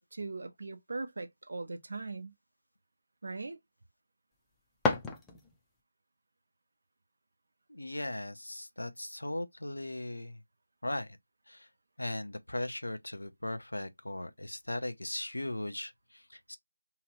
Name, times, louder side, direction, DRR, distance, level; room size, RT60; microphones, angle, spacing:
voice 1, 0.0-2.3 3.2-3.6, right 3 dB, 60° right, 0.6 m, -40 dB
sound 1, 4.3-5.8, left 3 dB, 5° left, 0.5 m, -34 dB
voice 2, 7.7-10.4 10.8-11.2 11.5-11.7 12.0-16.6, left 1 dB, 80° left, 0.6 m, -38 dB
2.8 x 2.4 x 2.9 m
figure-of-eight pair, 160°, 0 cm